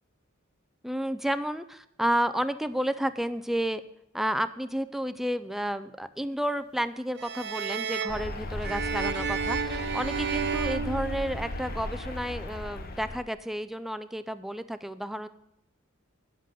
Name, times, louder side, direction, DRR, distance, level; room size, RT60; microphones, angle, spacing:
voice 1, 0.8-3.8 4.1-15.3, right 1 dB, ahead, 12 dB, 0.3 m, -31 dB
sound 1, 7.2-11.8, right 6 dB, 55° right, 0.6 m, -32 dB
sound 2, 8.1-13.2, left 2 dB, 45° left, 0.8 m, -36 dB
9.7 x 7.5 x 5.5 m, 0.79 s
head